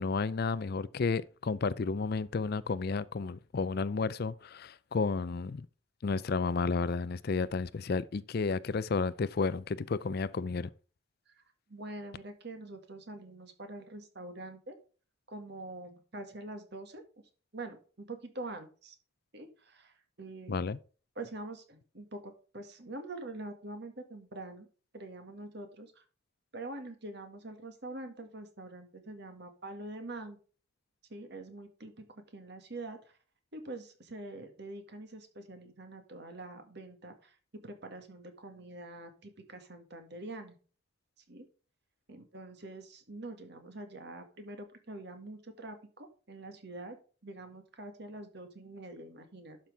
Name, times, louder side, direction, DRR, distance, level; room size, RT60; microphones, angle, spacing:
voice 1, 0.0-5.7 6.0-10.7 20.5-20.8, left 4 dB, 50° left, 0.4 m, -32 dB
voice 2, 11.7-14.8 15.3-17.0 17.5-19.0 19.3-20.7 21.2-24.7 24.9-26.0 26.5-30.4 31.1-33.2 33.5-40.6 41.3-41.5 42.1-47.0 47.2-49.6, right 2 dB, 55° right, 1.9 m, -45 dB
12.0 x 6.0 x 3.5 m
head